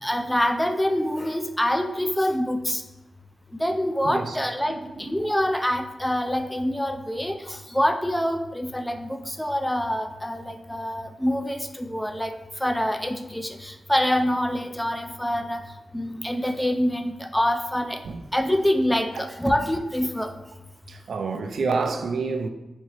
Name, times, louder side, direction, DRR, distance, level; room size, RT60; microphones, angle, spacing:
voice 1, 0.0-2.8 3.5-12.3 12.6-15.6 15.9-18.0 18.3-20.3, left 1 dB, 5° left, 0.3 m, -25 dB
voice 2, 4.0-4.4 4.7-5.4 18.0-18.2 19.2-19.3 20.9-22.5, right 4 dB, 80° right, 0.3 m, -29 dB
4.2 x 2.8 x 3.0 m
wide cardioid pair, 100°, 0 cm